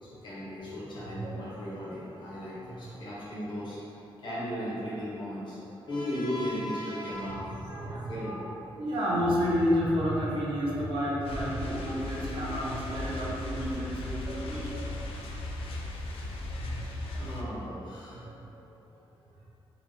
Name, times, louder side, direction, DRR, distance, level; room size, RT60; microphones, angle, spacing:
voice 1, 0.0-5.6 5.9-8.4 14.5-14.6 17.1-18.2, equal, 55° left, -8 dB, 1.0 m, -36 dB
voice 2, 0.9-1.9 2.6-3.0 5.6-5.9 7.3-14.8 16.4-17.5 18.2-18.3, equal, 75° right, -5 dB, 0.7 m, -32 dB
sound 1, 11.2-17.4, left 2 dB, 85° left, 0.4 m, -37 dB
3.6 x 2.9 x 2.7 m, 2.9 s
wide cardioid pair, 155°, 9 cm